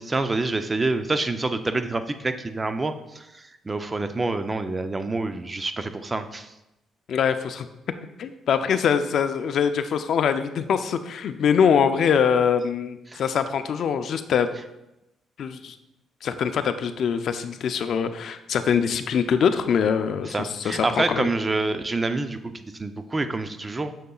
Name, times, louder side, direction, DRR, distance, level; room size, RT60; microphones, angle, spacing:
voice 1, 0.0-6.5 13.1-13.2 20.2-23.9, right 3 dB, 25° right, 9 dB, 0.5 m, -27 dB
voice 2, 7.1-7.7 8.2-14.5 15.4-15.8 16.2-21.3, left 7 dB, 65° left, 10 dB, 0.4 m, -23 dB
6.6 x 6.5 x 2.3 m, 0.91 s
cardioid pair, 90°, 0 cm